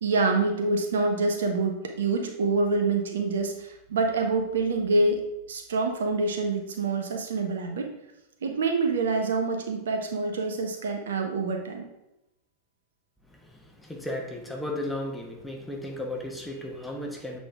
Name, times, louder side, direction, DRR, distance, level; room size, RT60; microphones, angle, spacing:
voice 1, 0.0-7.9 8.4-11.8, right 3 dB, 65° right, 3 dB, 0.9 m, -26 dB
voice 2, 13.3-17.4, left 1 dB, 5° left, 0 dB, 1.1 m, -35 dB
7.8 x 4.1 x 3.5 m, 0.89 s
figure-of-eight pair, 90°, 0 cm